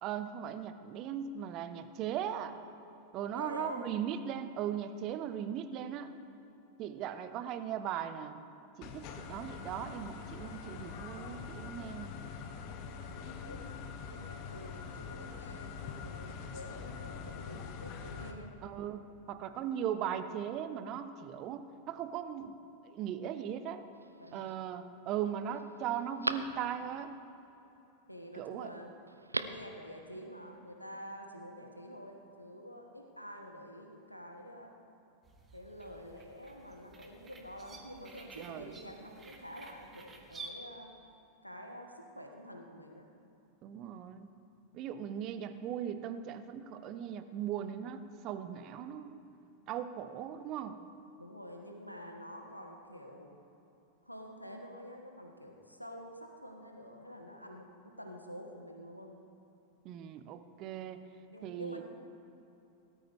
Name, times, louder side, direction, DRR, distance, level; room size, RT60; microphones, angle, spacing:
voice 1, 0.0-2.6 3.1-6.1 6.8-8.4 8.8-12.2 18.6-22.6 22.8-23.9 24.3-27.2 28.3-28.7 38.4-38.7 43.6-44.3 44.7-49.2 49.7-50.8 59.8-61.0 61.4-61.8, right 9 dB, 40° right, 11 dB, 0.8 m, -38 dB
voice 2, 3.3-3.8 13.2-13.6 13.9-18.5 24.2-24.5 28.1-28.9 29.4-34.7 35.5-40.9 41.4-43.1 51.2-53.4 54.0-57.7 58.0-59.2 61.3-61.8, equal, 90° left, 2 dB, 1.4 m, -48 dB
sound 1, 8.8-18.3, left 6 dB, 45° left, 1.2 m, -44 dB
Telephone, 23.9-24.5 25.1-25.2 25.5-27.1 29.1-29.7 30.0-30.1, right 2 dB, 80° right, 0.5 m, -39 dB
sound 2, 35.2-40.5, right 4 dB, 20° right, 1.6 m, -52 dB
18.0 x 13.0 x 3.5 m, 2.9 s
figure-of-eight pair, 90°, 0 cm